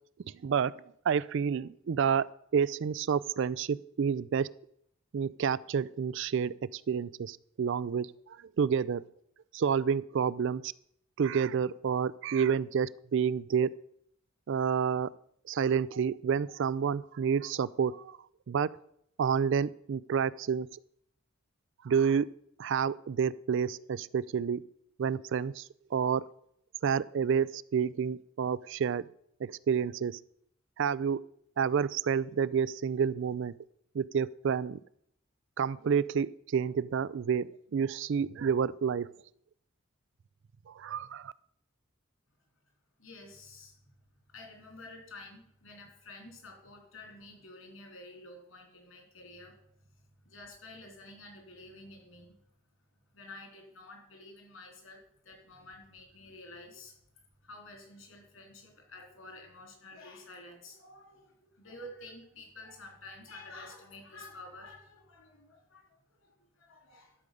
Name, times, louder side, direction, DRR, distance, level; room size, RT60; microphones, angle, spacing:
voice 1, 1.1-2.2 2.5-4.5 5.1-9.0 9.5-10.7 11.2-13.7 14.5-15.1 15.5-18.2 18.5-18.7 19.2-20.7 21.8-22.3 22.6-24.6 25.0-25.6 25.9-26.2 26.8-29.1 29.4-30.2 30.8-31.2 31.6-33.5 33.9-34.8 35.6-39.1 40.7-41.3, right 7 dB, 60° right, 19 dB, 0.4 m, -29 dB
voice 2, 43.0-43.8 44.3-49.6 50.0-52.4 53.1-67.2, left 2 dB, 75° left, 2 dB, 3.6 m, -50 dB
12.0 x 5.0 x 6.8 m, 0.71 s
head